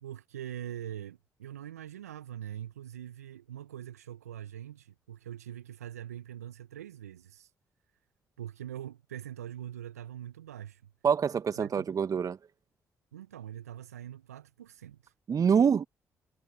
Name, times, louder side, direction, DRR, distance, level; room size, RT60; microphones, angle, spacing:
voice 1, 0.0-7.5 8.4-10.9 11.6-11.8 13.1-15.1, right 11 dB, 85° right, 1.2 m, -43 dB
voice 2, 11.0-12.4 15.3-15.8, right 7 dB, 45° right, 1.8 m, -25 dB
figure-of-eight pair, 40°, 8 cm